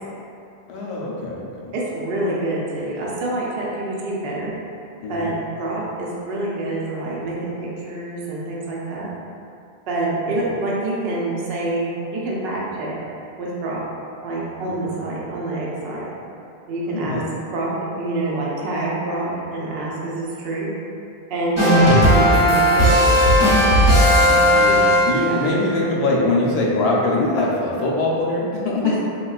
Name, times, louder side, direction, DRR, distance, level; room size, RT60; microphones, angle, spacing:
voice 1, 0.7-1.7 5.0-5.3 14.7-14.9 16.9-17.3 24.2-29.0, left 2 dB, 80° left, -3 dB, 0.8 m, -23 dB
voice 2, 1.7-4.5 5.1-9.1 9.9-13.0 13.4-13.8 14.2-16.1 16.7-17.2 17.5-20.7 21.3-23.0 25.2-25.5, right 2 dB, 70° right, -5 dB, 0.8 m, -26 dB
sound 1, 21.6-25.4, equal, 30° right, 0.8 m, -15 dB
3.6 x 2.3 x 2.3 m, 2.6 s
omnidirectional pair, 1.1 m